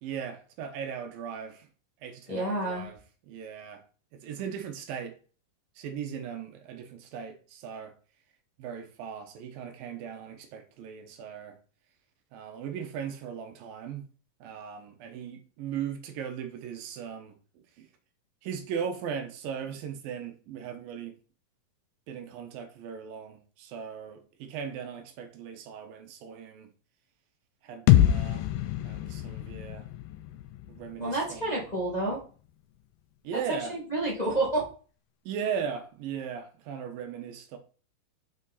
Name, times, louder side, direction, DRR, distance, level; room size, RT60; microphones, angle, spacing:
voice 1, 0.0-1.7 2.0-3.0 3.3-3.8 4.1-5.2 5.8-7.9 8.6-11.5 12.3-14.0 14.4-17.9 18.4-21.2 22.1-26.7 27.6-28.5 28.8-29.9 30.7-31.6 33.2-33.8 35.3-37.6, right 7 dB, 80° right, 2.8 m, -38 dB
voice 2, 2.3-2.9 31.0-32.2 33.5-34.6, right 2 dB, 15° left, 1.9 m, -29 dB
sound 1, 27.9-31.7, left 13 dB, 80° left, 2.3 m, -26 dB
6.4 x 5.1 x 4.1 m
omnidirectional pair, 4.0 m